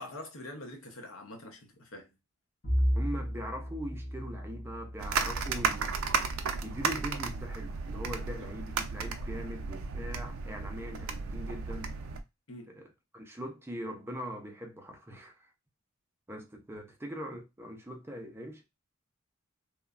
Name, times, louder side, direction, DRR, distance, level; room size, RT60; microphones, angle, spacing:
voice 1, 0.0-2.1 8.4-8.5 12.5-12.8, left 1 dB, 75° left, 0.8 m, -45 dB
Bowed string instrument, 2.6-7.2, equal, 45° left, 1.0 m, -34 dB
voice 2, 2.9-6.0 6.6-12.0 12.7-15.5 16.3-18.6, equal, 10° right, 0.5 m, -41 dB
sound 1, 5.0-12.2, right 5 dB, 75° right, 0.4 m, -34 dB
3.0 x 2.1 x 2.3 m
head